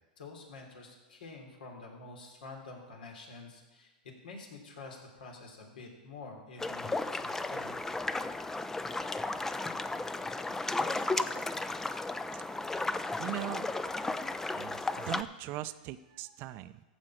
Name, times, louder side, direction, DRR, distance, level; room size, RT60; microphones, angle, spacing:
voice 1, 0.2-3.9 4.2-7.7, left 3 dB, 80° left, 1 dB, 3.2 m, -48 dB
sound 1, 6.6-15.2, left 2 dB, 10° left, 0.5 m, -34 dB
voice 2, 13.2-13.7 14.5-16.8, right 15 dB, 45° right, 13 dB, 0.6 m, -40 dB
14.5 x 5.4 x 7.6 m, 1.1 s
hypercardioid pair, 115°, 5 cm